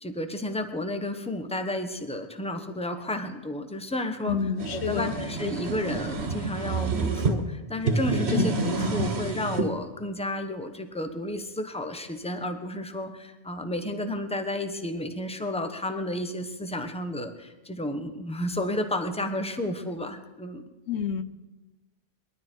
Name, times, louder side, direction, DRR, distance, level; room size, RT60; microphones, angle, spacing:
voice 1, 0.0-4.4 4.7-20.6, left 1 dB, 5° left, 7 dB, 1.0 m, -32 dB
voice 2, 4.3-5.1 8.3-8.5 20.9-21.2, left 7 dB, 90° left, 12 dB, 1.0 m, -28 dB
sound 1, 4.3-7.4 7.8-9.7, right 3 dB, 75° right, 1.6 m, -28 dB
20.5 x 12.5 x 4.5 m, 1.1 s
omnidirectional pair, 1.1 m